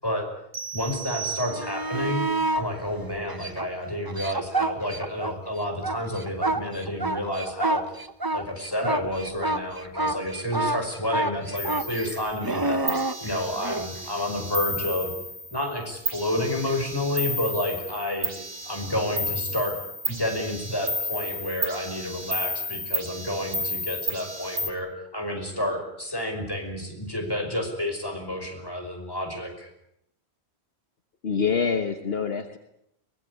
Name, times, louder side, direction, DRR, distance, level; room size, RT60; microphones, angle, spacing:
sound 1, 0.5-2.1, right 7 dB, 75° right, 1.5 m, -35 dB
voice 1, 0.7-2.2 2.5-7.8 8.3-12.8 13.2-15.1 15.5-18.3 18.6-19.8 20.1-29.7, left 1 dB, 20° left, 3 dB, 5.5 m, -30 dB
sound 2, 1.4-2.7 3.3-5.3 5.7-13.9 16.6-16.7, right 2 dB, 20° right, 1.1 m, -28 dB
sound 3, 11.6-12.4 12.9-15.7 16.1-24.7, equal, 50° right, 2.5 m, -32 dB
voice 2, 31.2-32.6, left 5 dB, 65° left, 7 dB, 1.6 m, -25 dB
23.0 x 19.0 x 9.8 m, 0.79 s
omnidirectional pair, 1.1 m